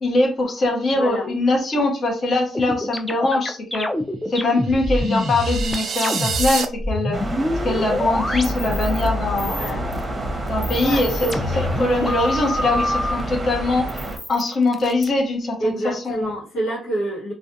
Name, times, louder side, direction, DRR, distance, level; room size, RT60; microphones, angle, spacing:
voice 1, 0.0-3.9 4.3-7.2 7.6-9.8 10.5-13.9 14.3-15.8 16.1-16.2, left 2 dB, 50° left, 1 dB, 0.7 m, -22 dB
voice 2, 0.9-1.3 9.4-9.8 10.8-11.1 15.6-17.3, right 1 dB, 90° left, -8 dB, 1.0 m, -27 dB
sound 1, 2.5-9.1 9.4-10.0 10.5-13.2 13.9-15.1, left 1 dB, 10° left, 0.4 m, -26 dB
sound 2, 4.6-6.6, right 6 dB, 65° right, 0.3 m, -28 dB
sound 3, 7.1-14.2, right 1 dB, 25° right, 0.7 m, -27 dB
2.4 x 2.2 x 2.5 m, 0.37 s
cardioid pair, 90°, 0 cm